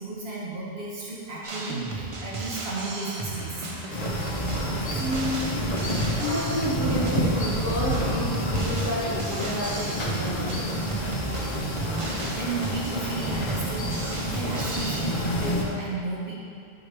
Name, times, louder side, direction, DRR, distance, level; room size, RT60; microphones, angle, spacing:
voice 1, 0.0-3.7 4.7-5.1 11.7-16.3, right 3 dB, 70° right, -6 dB, 1.3 m, -34 dB
Drum kit, 1.4-15.0, right 2 dB, 40° right, 0.6 m, -35 dB
Applause, 3.0-8.0, equal, 75° left, 2.1 m, -47 dB
sound 1, 3.9-15.6, equal, 45° left, 0.9 m, -29 dB
voice 2, 5.0-5.6 6.2-10.8, equal, 15° right, -9 dB, 1.4 m, -30 dB
7.5 x 4.7 x 3.3 m, 2.4 s
omnidirectional pair, 1.1 m